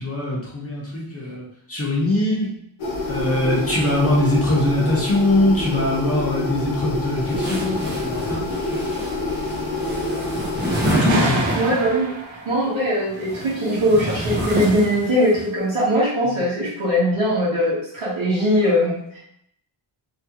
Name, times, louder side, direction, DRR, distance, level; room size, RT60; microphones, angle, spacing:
voice 1, 0.0-2.5 3.1-8.8 10.8-11.5 16.2-16.4, left 1 dB, 30° left, -4 dB, 0.9 m, -22 dB
sound 1, 2.8-11.0, left 2 dB, 75° left, 0.9 m, -27 dB
sound 2, 7.3-12.0 13.0-15.4, right 1 dB, 25° right, 0.7 m, -28 dB
sound 3, 11.1-13.0, right 2 dB, 75° right, 0.7 m, -29 dB
voice 2, 11.5-12.1 12.4-19.2, equal, 90° right, -9 dB, 1.3 m, -20 dB
3.0 x 2.8 x 2.9 m, 0.73 s
wide cardioid pair, 150°, 47 cm